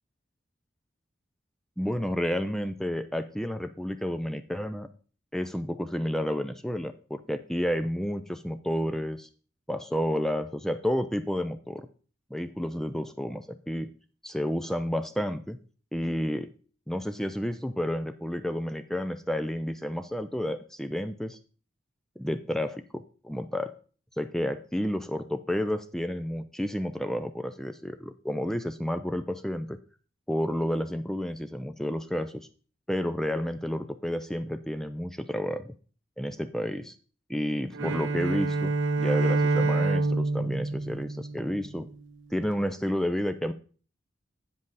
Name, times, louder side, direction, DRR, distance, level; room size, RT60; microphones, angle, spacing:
voice 1, 1.8-4.9 5.3-9.3 9.7-11.9 12.3-13.9 14.2-15.6 15.9-16.5 16.9-21.4 22.2-23.7 24.2-29.8 30.3-32.5 32.9-35.7 36.2-36.9 37.3-41.9 42.3-43.5, equal, ahead, 10 dB, 0.4 m, -31 dB
Bowed string instrument, 37.7-42.0, right 2 dB, 75° right, 0.7 m, -27 dB
8.7 x 7.5 x 4.0 m, 0.40 s
head